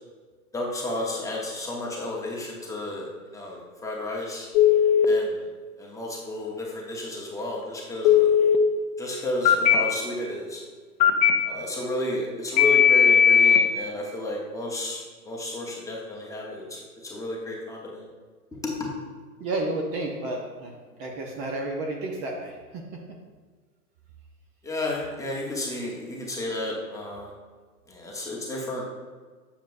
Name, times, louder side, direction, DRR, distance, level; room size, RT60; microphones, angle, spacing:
voice 1, 0.5-4.5 5.0-5.4 5.8-8.4 9.0-10.6 11.5-18.0 18.8-18.9 24.6-27.3 27.9-28.8, left 1 dB, 5° left, -3 dB, 1.0 m, -32 dB
Telephone, 4.5-5.1 8.0-8.6 9.4-9.7 11.0-11.3 12.6-13.6, left 9 dB, 30° left, 0.4 m, -17 dB
voice 2, 19.4-20.7 21.0-23.0, right 2 dB, 30° right, 0 dB, 0.8 m, -31 dB
7.2 x 7.0 x 2.6 m, 1.5 s
hypercardioid pair, 120°, 47 cm